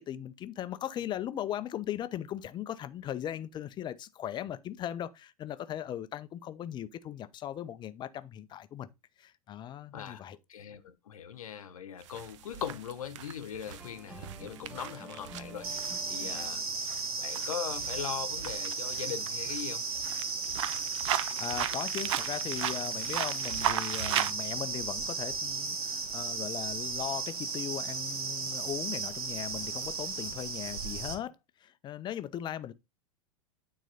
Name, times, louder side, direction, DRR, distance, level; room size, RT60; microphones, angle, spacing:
voice 1, 0.1-8.9 9.2-10.4 21.4-31.4 31.6-32.7, left 11 dB, 25° left, 0.6 m, -38 dB
voice 2, 9.9-16.6 17.2-19.8, left 9 dB, 70° left, 0.9 m, -40 dB
sound 1, 12.0-24.3, right 11 dB, 55° right, 0.6 m, -37 dB
sound 2, 13.8-17.0, right 2 dB, 10° right, 0.9 m, -49 dB
sound 3, 15.6-31.1, right 4 dB, 75° right, 1.5 m, -35 dB
9.0 x 4.1 x 4.0 m
figure-of-eight pair, 95°, 19 cm